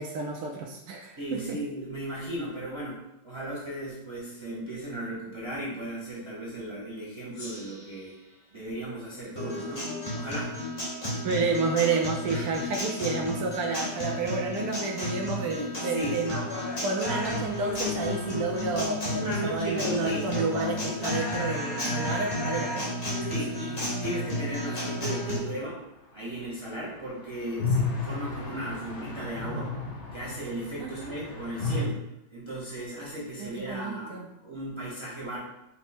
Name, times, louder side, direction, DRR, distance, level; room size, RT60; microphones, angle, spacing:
voice 1, 0.0-1.6 11.2-16.4 16.8-22.9 30.8-31.1 33.4-34.3, right 4 dB, 70° right, 0 dB, 0.9 m, -30 dB
voice 2, 1.2-8.2 8.5-9.9 10.1-10.5 11.3-11.4 12.3-12.8 15.4-16.1 19.2-21.1 23.3-25.8 26.1-29.7 30.1-32.0 32.3-35.4, right 1 dB, 20° right, -6 dB, 0.8 m, -36 dB
Gong, 7.3-10.5, left 1 dB, 90° left, 2.4 m, -51 dB
Guitar, 9.4-25.4, left 1 dB, 35° left, 1.3 m, -32 dB
sound 1, 17.2-21.0 21.2-21.3 21.5-21.6 26.6-31.8, left 4 dB, 70° left, 0.6 m, -35 dB
5.3 x 2.0 x 4.3 m, 0.89 s
omnidirectional pair, 2.0 m